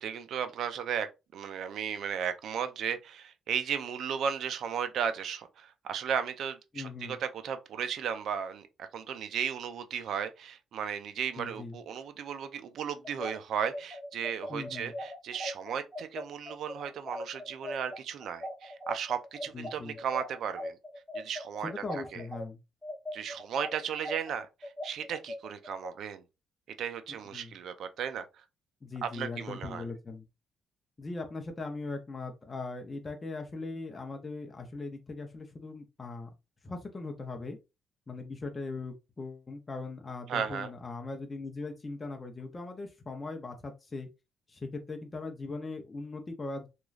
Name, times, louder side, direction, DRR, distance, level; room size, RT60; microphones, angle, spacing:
voice 1, 0.0-20.8 21.1-22.2 23.1-26.2 26.8-28.4 29.0-29.8 40.3-40.7, right 8 dB, 70° right, 0.4 m, -35 dB
voice 2, 6.7-7.2 11.4-11.8 14.5-14.9 19.5-20.0 21.6-22.6 27.3-27.5 28.8-30.2 31.0-36.3 36.6-37.6 38.1-44.1 44.5-46.7, left 3 dB, 30° left, 0.6 m, -40 dB
sound 1, 13.0-22.4 22.8-25.9, left 1 dB, 15° left, 0.9 m, -39 dB
3.0 x 2.3 x 2.4 m
cardioid pair, 90°, 0 cm